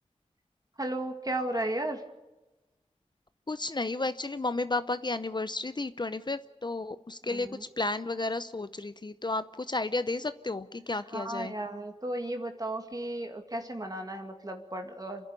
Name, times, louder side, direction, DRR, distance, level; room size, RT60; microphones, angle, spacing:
voice 1, 0.8-2.0 7.2-7.6 11.1-15.3, right 1 dB, 30° right, 4 dB, 2.2 m, -34 dB
voice 2, 3.5-7.5 7.8-11.5, left 2 dB, 40° left, 12 dB, 0.7 m, -32 dB
27.0 x 11.0 x 9.7 m, 1.1 s
wide cardioid pair, 50°, 12 cm